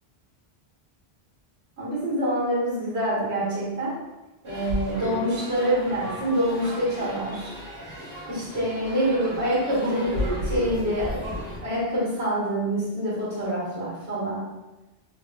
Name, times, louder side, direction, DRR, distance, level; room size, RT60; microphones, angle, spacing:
voice 1, 1.8-4.0 4.4-7.6 8.2-11.2 11.6-14.5, right 1 dB, 80° right, -7 dB, 1.4 m, -26 dB
sound 1, 4.5-11.6, equal, 60° right, 1.4 m, -33 dB
3.5 x 2.5 x 2.2 m, 1.1 s
omnidirectional pair, 1.1 m